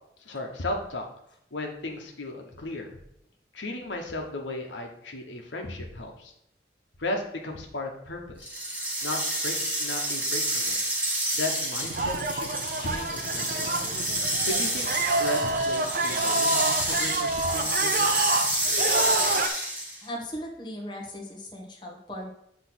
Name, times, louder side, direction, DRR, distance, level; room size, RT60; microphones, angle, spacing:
voice 1, 0.2-1.1 1.5-3.0 3.5-6.3 7.0-8.5 9.0-9.2 9.4-10.8 11.3-12.5 12.8-13.7 14.4-14.9 15.2-18.2, left 2 dB, 90° left, 1 dB, 1.2 m, -35 dB
sound 1, 8.4-20.0, right 1 dB, 10° right, 1.4 m, -29 dB
sound 2, 11.8-19.5, right 3 dB, 50° right, 0.6 m, -28 dB
voice 2, 20.0-22.3, equal, 25° left, -2 dB, 1.3 m, -37 dB
8.0 x 3.2 x 6.1 m, 0.75 s
head